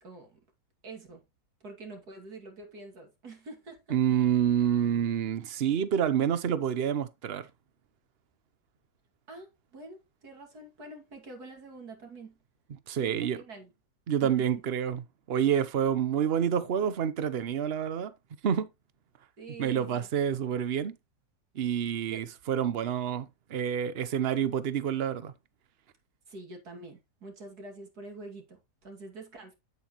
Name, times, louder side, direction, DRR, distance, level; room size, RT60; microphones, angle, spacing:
voice 1, 0.0-0.4 0.8-1.2 1.6-4.0 9.3-12.4 13.0-13.7 14.2-14.6 19.4-20.1 22.1-22.2 26.3-29.6, right 3 dB, 60° right, 2.9 m, -46 dB
voice 2, 3.9-7.5 12.9-13.4 14.1-15.0 15.3-18.1 18.4-18.7 19.6-21.0 21.5-25.3, right 9 dB, 45° right, 0.8 m, -28 dB
9.1 x 8.1 x 3.0 m
omnidirectional pair, 1.8 m